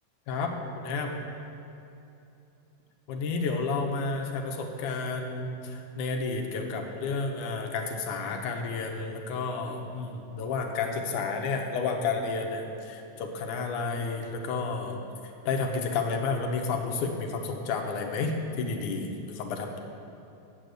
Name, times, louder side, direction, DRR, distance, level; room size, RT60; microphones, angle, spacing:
voice 1, 0.3-1.1 3.1-15.0 15.5-19.8, left 4 dB, 75° left, 3 dB, 2.3 m, -31 dB
9.0 x 6.9 x 7.8 m, 2.8 s
omnidirectional pair, 3.6 m